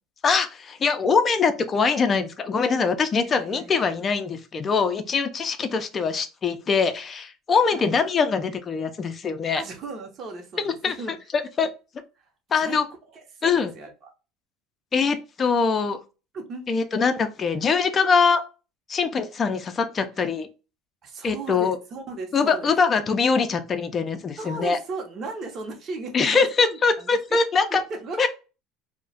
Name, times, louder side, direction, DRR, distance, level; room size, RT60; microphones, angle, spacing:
voice 1, 0.2-9.6 10.6-10.9 11.3-11.7 12.5-12.8 13.4-13.7 14.9-16.0 16.7-18.4 18.9-20.5 21.2-21.8 22.3-24.8 26.1-27.8 28.2-28.3, left 5 dB, 30° left, 0.4 m, -23 dB
voice 2, 3.2-3.9 7.7-7.9 9.6-11.1 12.2-12.3 12.6-12.8 13.1-14.1 16.3-16.7 21.0-22.7 24.4-27.4 27.7-28.3, right 3 dB, 45° right, 0.8 m, -36 dB
2.3 x 2.1 x 3.9 m
supercardioid pair, 105°, 0 cm